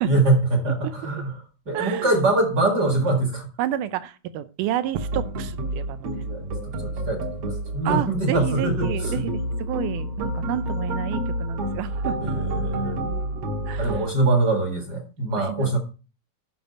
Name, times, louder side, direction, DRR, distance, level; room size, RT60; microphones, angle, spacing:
voice 1, 0.0-1.3 1.7-3.5 6.2-6.5 6.8-9.2 12.2-13.0 13.8-15.8, right 2 dB, 40° right, 4 dB, 1.8 m, -23 dB
voice 2, 1.7-2.2 3.6-6.1 7.8-12.2 12.8-13.0 13.7-14.0 15.4-15.8, right 12 dB, 80° right, 14 dB, 2.2 m, -30 dB
sound 1, 4.9-14.0, right 1 dB, 55° right, 1.9 m, -29 dB
10.5 x 6.1 x 5.2 m, 0.33 s
omnidirectional pair, 3.8 m